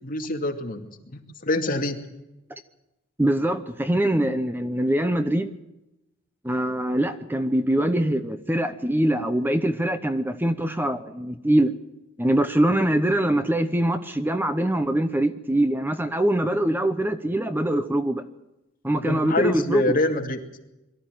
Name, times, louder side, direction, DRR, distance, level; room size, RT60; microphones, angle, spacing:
voice 1, 0.0-2.0 18.9-20.4, left 2 dB, 45° left, 3 dB, 2.5 m, -26 dB
voice 2, 3.2-5.6 6.4-11.7 12.2-18.3 18.8-20.0, right 1 dB, 10° right, 9 dB, 0.9 m, -23 dB
22.5 x 13.5 x 9.1 m, 0.94 s
head